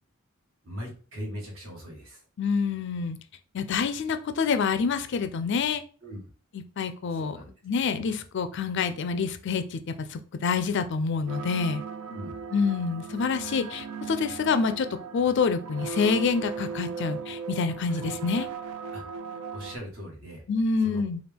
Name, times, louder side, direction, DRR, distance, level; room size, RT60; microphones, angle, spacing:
voice 1, 0.6-2.2 6.0-6.2 7.1-7.5 12.1-12.4 18.9-20.4 20.8-21.0, equal, 60° right, -1 dB, 1.6 m, -40 dB
voice 2, 2.4-3.2 3.5-5.8 6.8-7.4 7.6-11.8 12.5-14.9 15.1-18.5 20.5-21.2, left 5 dB, 55° left, 10 dB, 0.4 m, -27 dB
sound 1, 11.3-19.8, right 5 dB, 85° right, 0.4 m, -38 dB
4.3 x 2.4 x 3.5 m, 0.39 s
head